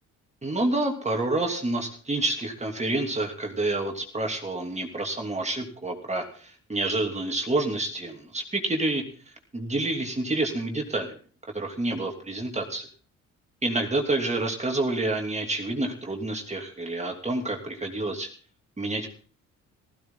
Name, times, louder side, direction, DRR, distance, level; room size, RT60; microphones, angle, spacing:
voice 1, 0.4-11.2 11.5-12.9 13.6-18.3 18.8-19.1, right 2 dB, 20° right, 3 dB, 3.0 m, -28 dB
15.5 x 15.5 x 4.0 m, 0.42 s
cardioid pair, 90°, 30 cm